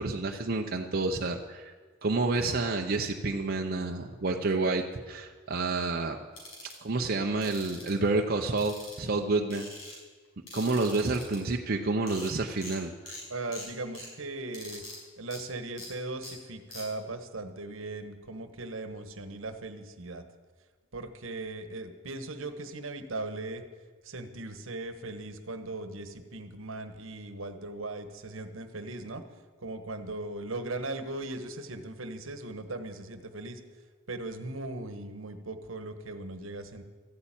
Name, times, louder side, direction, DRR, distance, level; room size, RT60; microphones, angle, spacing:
voice 1, 0.0-1.7 2.0-6.2 6.6-9.7 10.5-13.2, right 3 dB, 45° right, 2 dB, 0.7 m, -29 dB
sound 1, 6.4-6.7 7.4-7.9 8.6-9.2 9.5-10.0 10.5-11.4 11.8-11.9 12.1-12.3 12.6-12.8 13.1-13.2 13.5-14.1 14.5-15.0 15.3-15.4 15.8-15.9 16.2-16.3 16.7-16.8, left 2 dB, 85° left, 5.8 m, -43 dB
voice 2, 13.3-14.8 15.2-20.2 20.9-23.6 24.0-29.2 29.6-33.6 34.1-36.8, right 2 dB, 70° right, 10 dB, 1.2 m, -38 dB
14.0 x 8.7 x 8.9 m, 1.5 s
head